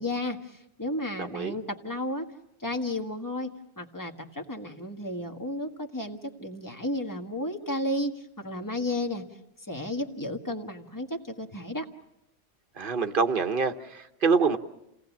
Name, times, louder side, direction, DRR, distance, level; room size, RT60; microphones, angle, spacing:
voice 1, 0.0-2.2 2.6-9.2 9.7-11.9, left 1 dB, 15° left, 4 dB, 1.6 m, -33 dB
voice 2, 1.2-1.6 12.8-14.6, right 5 dB, 50° right, 7 dB, 1.2 m, -26 dB
29.5 x 18.0 x 7.2 m, 0.88 s
omnidirectional pair, 1.2 m